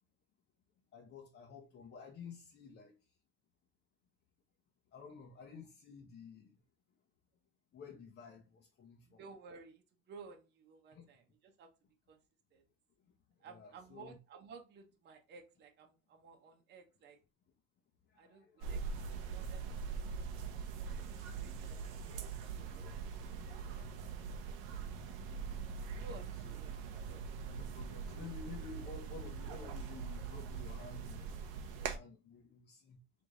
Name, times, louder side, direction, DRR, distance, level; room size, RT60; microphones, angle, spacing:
voice 1, 0.9-2.9 4.9-6.5 7.7-9.2 10.9-11.1 13.4-14.2 18.1-19.0 19.4-19.9 23.7-24.8 26.2-26.3 27.5-31.2 31.7-33.0, left 5 dB, 35° left, 0.9 m, -52 dB
voice 2, 9.1-11.7 12.1-12.2 12.5-12.6 13.4-17.2 18.2-20.3 21.2-21.8 22.2-23.4 26.0-27.2, right 4 dB, 35° right, 0.9 m, -56 dB
sound 1, 18.6-32.0, right 6 dB, 85° right, 0.8 m, -42 dB
3.4 x 3.1 x 3.8 m
supercardioid pair, 120°, 29 cm